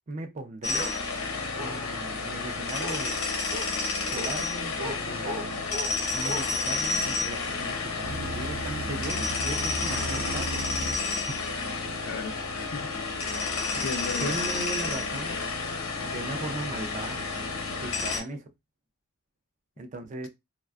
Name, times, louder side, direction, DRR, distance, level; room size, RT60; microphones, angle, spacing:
voice 1, 0.1-1.0 1.6-3.2 4.1-5.7 6.1-10.6 11.3-11.4 13.7-13.9 14.2-15.4 16.0-17.2 17.7-18.5 19.8-20.3, right 2 dB, 35° right, 0.4 m, -37 dB
sound 1, 0.6-18.2, left 3 dB, 85° left, 0.8 m, -31 dB
Bark, 0.7-1.0 1.6-2.1 2.8-3.0 3.5-3.7 4.1-4.3 4.8-5.0 5.2-5.9 6.2-6.4, right 1 dB, 60° right, 0.8 m, -36 dB
sound 2, 8.0-13.9, right 1 dB, 90° right, 0.6 m, -38 dB
voice 2, 12.1-12.9 13.3-14.4, left 4 dB, 55° left, 0.4 m, -36 dB
2.5 x 2.2 x 2.3 m
head